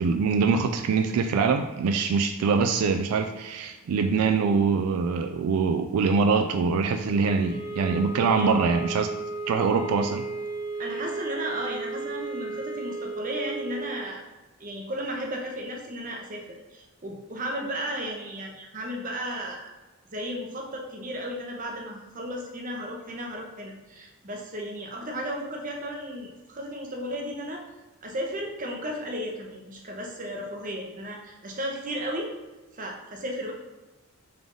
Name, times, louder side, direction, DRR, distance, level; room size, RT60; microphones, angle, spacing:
voice 1, 0.0-9.1 9.5-10.3, right 5 dB, 85° right, 6 dB, 0.3 m, -24 dB
sound 1, 7.0-14.0, right 3 dB, 30° left, 0.7 m, -34 dB
voice 2, 10.8-14.2 14.6-19.7 20.1-27.7 28.0-32.3 32.7-33.5, equal, 35° right, 1 dB, 0.7 m, -34 dB
3.7 x 3.3 x 3.7 m, 1.2 s
head